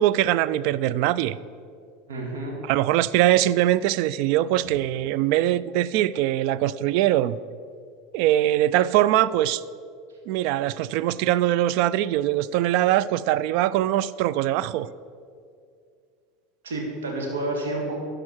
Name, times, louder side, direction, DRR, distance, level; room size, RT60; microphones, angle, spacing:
voice 1, 0.0-1.4 2.7-7.4 8.1-9.6 10.3-14.9, right 13 dB, 60° right, 17 dB, 0.3 m, -22 dB
voice 2, 2.1-2.6 16.6-18.0, right 2 dB, 80° right, 0 dB, 2.1 m, -29 dB
12.0 x 4.9 x 6.1 m, 2.3 s
hypercardioid pair, 85°, 0 cm